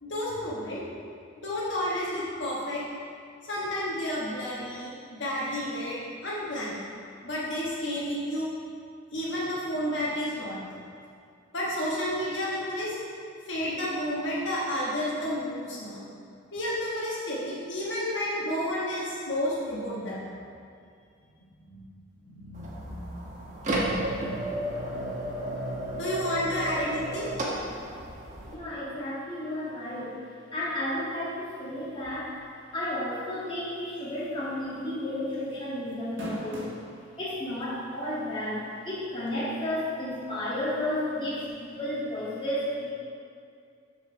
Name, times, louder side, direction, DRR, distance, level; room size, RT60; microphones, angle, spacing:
voice 1, 0.0-0.9 1.4-2.8 3.4-6.8 7.2-8.5 9.1-10.8 11.5-12.9 13.5-16.0 16.5-20.2 21.6-21.8 22.2-23.7 25.9-27.3 41.1-41.2, equal, 65° left, -6 dB, 1.4 m, -31 dB
sound 1, 22.5-28.5, right 1 dB, 40° right, 1.1 m, -32 dB
voice 2, 28.5-30.2 30.5-32.3 32.7-36.6 37.2-42.9, left 1 dB, 25° left, -8 dB, 1.8 m, -32 dB
sound 2, 34.2-34.5 34.8-34.9 35.9-36.8 37.6-37.7 39.3-39.4, equal, 70° right, 1.5 m, -36 dB
6.8 x 4.7 x 5.7 m, 2.3 s
head